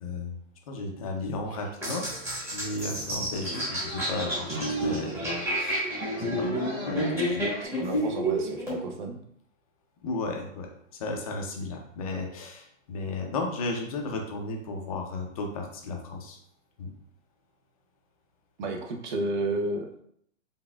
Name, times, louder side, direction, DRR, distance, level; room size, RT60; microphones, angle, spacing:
voice 1, 0.0-0.3 0.7-2.1 2.4-5.9 6.4-7.4 10.0-10.7 11.0-16.4 16.8-16.9, left 3 dB, 30° left, 2 dB, 0.5 m, -34 dB
sound 1, 1.5-7.7, right 1 dB, 90° right, 1.4 m, -43 dB
sound 2, 1.8-8.8, right 1 dB, 5° right, 1.1 m, -30 dB
voice 2, 7.6-9.2 18.6-19.9, right 2 dB, 40° right, 4 dB, 0.6 m, -32 dB
4.1 x 3.5 x 2.3 m, 0.69 s
hypercardioid pair, 155°, 39 cm